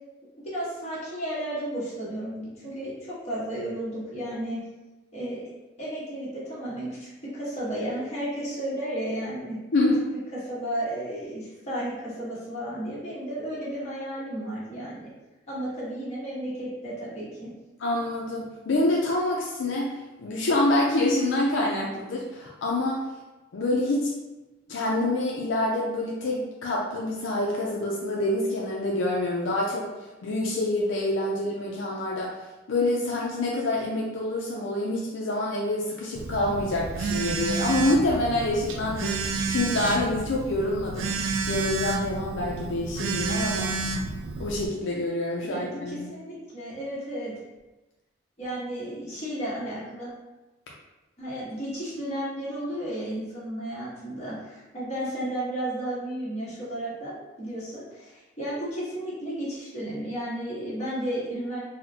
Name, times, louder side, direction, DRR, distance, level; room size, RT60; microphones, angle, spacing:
voice 1, 0.4-4.6 5.1-5.5 5.8-9.6 10.5-15.1 15.5-17.5 45.5-47.3 48.4-50.1 51.2-61.6, right 1 dB, 35° left, -8 dB, 1.2 m, -33 dB
voice 2, 9.7-10.1 17.8-23.0 23.5-24.1 24.7-29.9 30.2-32.4 32.7-43.8 44.4-46.1, left 1 dB, 75° left, -3 dB, 0.5 m, -26 dB
Telephone, 36.1-44.7, right 4 dB, 85° right, 0.3 m, -30 dB
4.0 x 2.1 x 2.7 m, 1.1 s
head